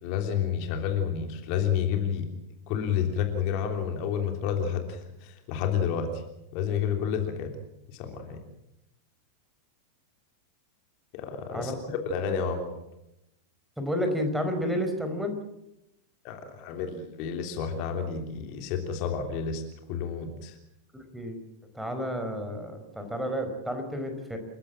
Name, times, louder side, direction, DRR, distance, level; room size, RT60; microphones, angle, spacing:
voice 1, 0.0-2.3 2.7-6.2 6.5-7.5 7.9-8.4 11.1-12.7 16.2-19.6 19.9-20.6, left 7 dB, 45° left, 5 dB, 3.3 m, -30 dB
voice 2, 13.8-15.3 20.9-21.4 21.7-24.4, equal, 5° right, 5 dB, 4.7 m, -31 dB
29.0 x 16.0 x 7.5 m, 0.85 s
figure-of-eight pair, 90°, 0 cm